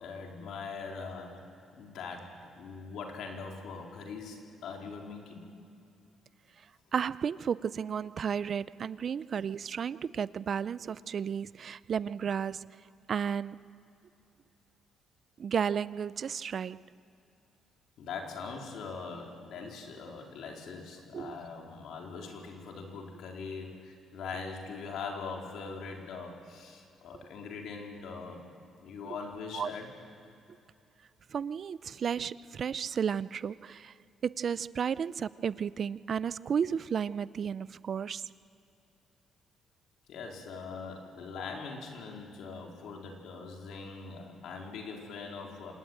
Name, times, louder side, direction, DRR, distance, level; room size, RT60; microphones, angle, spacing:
voice 1, 0.0-1.5 1.8-5.5 18.0-28.4 28.8-29.9 40.1-45.7, left 4 dB, 80° left, 1 dB, 4.2 m, -42 dB
voice 2, 6.9-12.7 13.1-13.6 15.4-16.8 21.1-21.4 29.0-29.1 29.5-29.7 31.3-33.9 34.2-38.2, right 7 dB, 55° right, 18 dB, 0.5 m, -33 dB
26.5 x 20.0 x 9.4 m, 2.7 s
cardioid pair, 90°, 0 cm